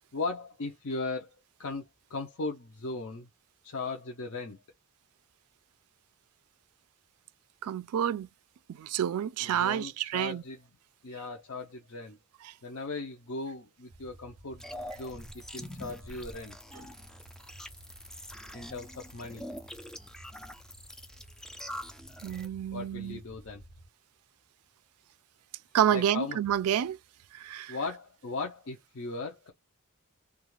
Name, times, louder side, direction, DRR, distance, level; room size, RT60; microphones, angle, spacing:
voice 1, 0.1-1.8 2.1-3.3 3.6-4.6 9.4-10.6 11.0-12.2 12.6-14.6 14.9-16.6 18.5-19.4 22.7-23.6 25.9-26.4 27.7-29.5, left 3 dB, 60° left, 0.6 m, -38 dB
voice 2, 7.6-8.3 8.7-10.4 22.2-23.2 25.7-27.0 27.3-27.8, right 10 dB, 80° right, 0.3 m, -29 dB
sound 1, 13.9-23.9, right 1 dB, 80° left, 1.3 m, -54 dB
sound 2, 14.6-22.5, equal, 5° left, 0.3 m, -44 dB
2.4 x 2.3 x 3.0 m
head